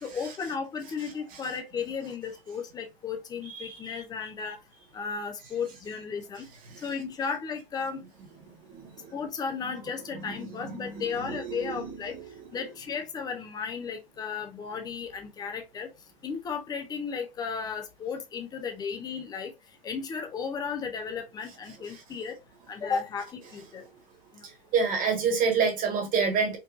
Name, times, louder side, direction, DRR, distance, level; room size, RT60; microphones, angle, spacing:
voice 1, 0.0-4.6 4.9-6.5 6.8-8.0 9.1-12.2 12.5-15.9 16.2-19.5 19.8-22.4 22.7-23.8 24.3-24.5, left 6 dB, 15° left, 0.7 m, -34 dB
voice 2, 3.6-3.9 10.8-11.6 24.7-26.6, right 5 dB, 30° right, 1.6 m, -26 dB
4.6 x 2.6 x 2.5 m
hypercardioid pair, 135°, 30 cm